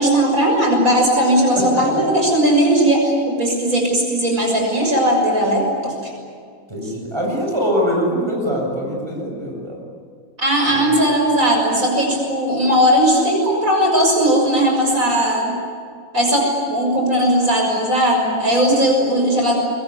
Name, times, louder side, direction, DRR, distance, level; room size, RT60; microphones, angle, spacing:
voice 1, 0.0-6.1 6.8-6.9 8.8-8.9 10.4-15.6 16.1-19.6, right 1 dB, 70° right, 1 dB, 6.8 m, -17 dB
voice 2, 6.7-9.8 10.7-10.9, equal, 20° right, -1 dB, 6.9 m, -23 dB
26.0 x 22.5 x 9.8 m, 2.1 s
omnidirectional pair, 1.5 m